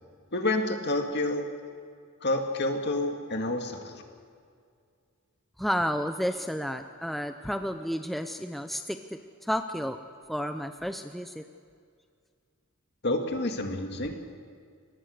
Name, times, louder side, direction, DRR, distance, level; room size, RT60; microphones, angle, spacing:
voice 1, 0.3-1.5 2.2-4.0 13.0-14.3, left 2 dB, 50° left, 4 dB, 2.2 m, -29 dB
voice 2, 5.6-10.0 10.3-11.4 14.0-14.1, equal, ahead, 7 dB, 0.6 m, -31 dB
23.5 x 19.0 x 6.6 m, 2.2 s
head